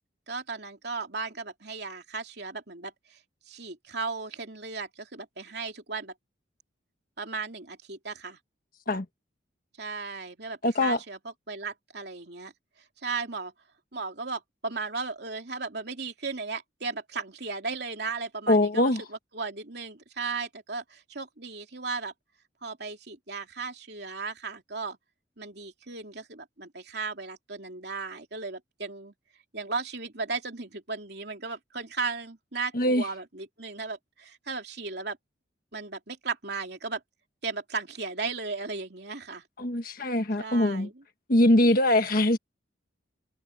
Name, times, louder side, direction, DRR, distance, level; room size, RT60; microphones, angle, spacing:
voice 1, 0.3-3.2 3.5-6.1 7.2-8.4 9.8-11.2 11.5-12.5 13.0-13.5 13.9-22.1 22.6-25.0 25.4-29.1 29.5-35.2 35.7-37.0 37.4-39.4 40.4-41.0, right 4 dB, 60° right, 3.2 m, -36 dB
voice 2, 10.6-11.0 18.5-19.0 32.7-33.0 39.6-40.9 41.3-42.4, left 1 dB, 50° left, 1.5 m, -22 dB
head